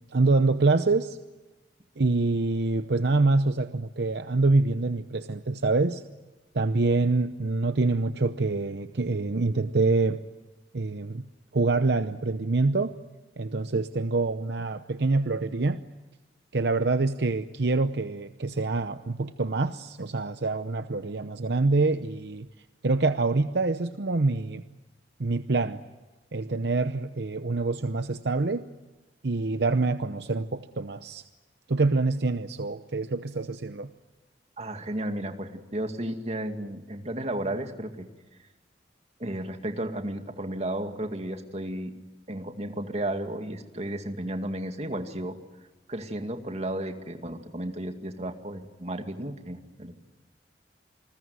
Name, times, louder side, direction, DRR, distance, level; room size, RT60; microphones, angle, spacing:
voice 1, 0.1-1.2 2.0-6.0 6.5-10.2 10.7-11.3 11.5-12.9 13.4-15.8 16.5-22.5 22.8-24.6 25.2-25.8 26.3-28.6 29.2-31.2 31.7-33.9, right 3 dB, 65° right, 10 dB, 0.8 m, -25 dB
voice 2, 34.6-38.1 39.2-41.9 42.3-45.4 45.9-49.9, right 1 dB, 40° right, 6 dB, 2.3 m, -33 dB
28.0 x 20.5 x 9.6 m, 1.2 s
head